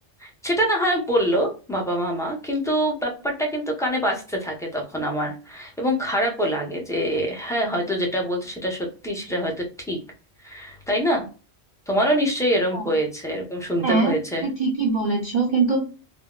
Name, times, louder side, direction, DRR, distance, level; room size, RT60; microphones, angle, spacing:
voice 1, 0.2-10.0 10.4-11.2 11.9-14.5, equal, 5° left, 0 dB, 0.6 m, -25 dB
voice 2, 13.8-14.1 14.4-15.8, right 4 dB, 45° right, -2 dB, 0.7 m, -22 dB
3.5 x 2.1 x 2.3 m, 0.34 s
omnidirectional pair, 1.2 m